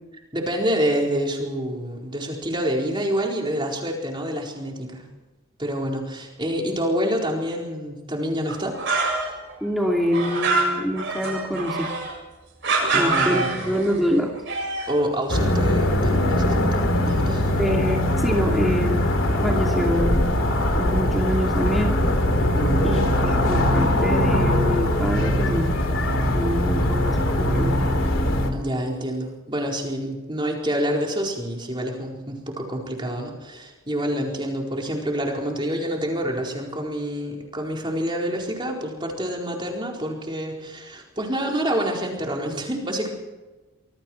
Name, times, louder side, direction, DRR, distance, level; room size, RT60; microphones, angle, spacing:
voice 1, 0.3-5.0 5.6-9.1 12.9-13.5 14.9-17.6 22.6-23.0 28.5-43.1, equal, 20° right, 0 dB, 4.4 m, -27 dB
sound 1, 8.5-9.5 9.8-12.1 12.6-14.0 14.3-15.0, right 3 dB, 55° right, 7.4 m, -25 dB
voice 2, 9.6-11.9 12.9-14.3 17.6-19.0 19.4-20.3 20.8-21.9 22.8-25.7 26.3-27.8, equal, ahead, -1 dB, 2.5 m, -25 dB
sound 2, 15.3-28.5, left 1 dB, 60° left, 3.3 m, -21 dB
25.5 x 23.0 x 4.6 m, 1.1 s
head